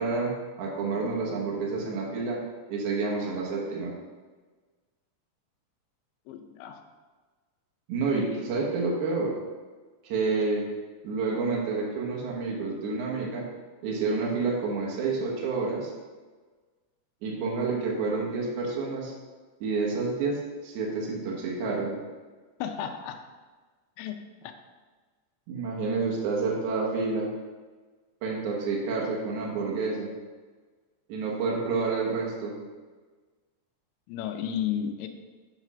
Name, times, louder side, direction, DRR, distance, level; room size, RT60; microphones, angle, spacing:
voice 1, 0.0-2.4 2.7-3.9 7.9-9.3 10.0-10.6 11.0-13.5 13.8-15.9 17.2-19.1 19.6-21.9 25.5-27.3 28.2-30.1 31.1-32.6, right 4 dB, 75° right, -3 dB, 1.7 m, -29 dB
voice 2, 6.3-6.8 22.6-23.2 24.0-24.2 24.4-24.5 34.1-35.1, left 9 dB, 85° left, 5 dB, 3.0 m, -33 dB
7.7 x 4.1 x 6.1 m, 1.4 s
omnidirectional pair, 5.1 m